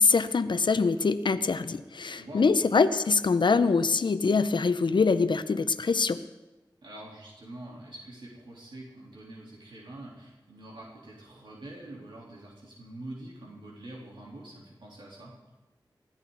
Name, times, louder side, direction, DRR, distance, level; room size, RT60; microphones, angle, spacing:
voice 1, 0.0-6.2, left 4 dB, 75° left, 12 dB, 0.7 m, -24 dB
voice 2, 2.2-2.6 6.8-15.3, right 1 dB, 75° right, -4 dB, 3.7 m, -45 dB
20.0 x 14.0 x 4.1 m, 1.0 s
cardioid pair, 50°, 8 cm